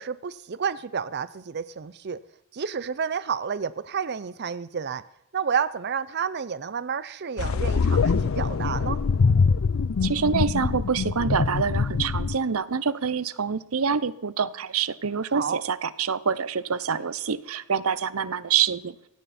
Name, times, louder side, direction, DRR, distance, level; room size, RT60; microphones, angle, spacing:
voice 1, 0.0-2.2 2.5-5.0 5.3-9.0 15.3-15.6, right 6 dB, 50° right, 15 dB, 0.6 m, -30 dB
sound 1, 7.4-12.4, left 5 dB, 70° left, 0.5 m, -24 dB
voice 2, 10.0-19.0, right 6 dB, 85° right, 17 dB, 0.8 m, -26 dB
17.0 x 15.5 x 4.3 m, 0.83 s
head